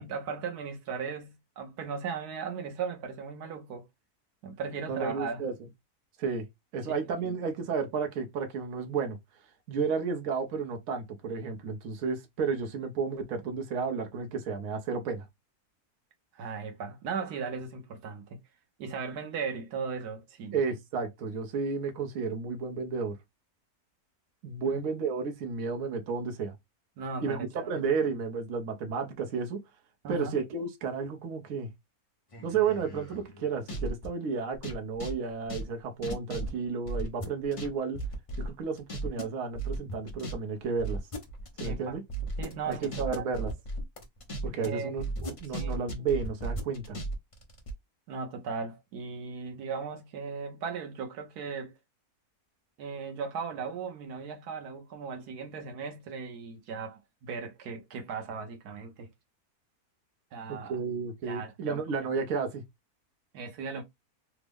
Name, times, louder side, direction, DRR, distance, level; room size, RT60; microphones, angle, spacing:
voice 1, 0.0-3.9 4.4-5.5 7.2-7.3 16.3-18.4 18.8-20.6 24.6-24.8 27.0-27.8 30.0-30.4 41.6-42.0 42.4-43.3 44.5-44.9 45.5-45.8 48.1-51.8 52.8-59.1 60.3-60.8 61.3-61.8 63.3-63.8, right 5 dB, 85° right, 1.3 m, -37 dB
voice 2, 4.9-5.5 6.2-6.5 6.7-9.2 9.7-15.3 20.5-23.2 24.4-26.5 27.2-29.6 30.1-31.7 32.4-38.0 38.4-41.0 41.6-42.0 42.7-43.5 44.4-47.0 60.5-62.6, right 5 dB, 65° right, 1.1 m, -32 dB
sound 1, 32.3-34.1 34.5-37.7 37.9-39.2 39.5-40.3 40.6-44.7 45.0-47.7, right 2 dB, 40° left, 0.4 m, -35 dB
3.5 x 2.0 x 3.4 m
omnidirectional pair, 1.6 m